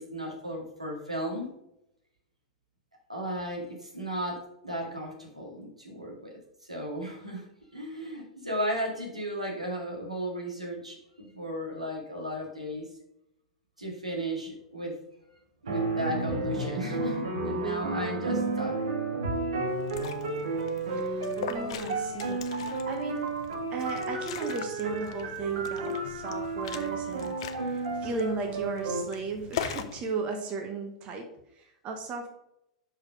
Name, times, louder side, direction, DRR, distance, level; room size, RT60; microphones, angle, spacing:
voice 1, 0.0-1.5 3.1-7.4 7.7-12.9 13.8-14.9 15.6-18.7 19.2-19.4, equal, 85° right, -1 dB, 2.0 m, -35 dB
sound 1, 15.7-29.0, right 3 dB, 65° right, 1.4 m, -32 dB
Liquid, 19.7-30.0, left 8 dB, 55° left, 0.6 m, -41 dB
voice 2, 20.9-23.3 23.7-31.3 31.5-32.3, right 4 dB, 35° right, 4 dB, 1.0 m, -36 dB
6.3 x 4.8 x 4.9 m, 0.81 s
figure-of-eight pair, 95°, 3 cm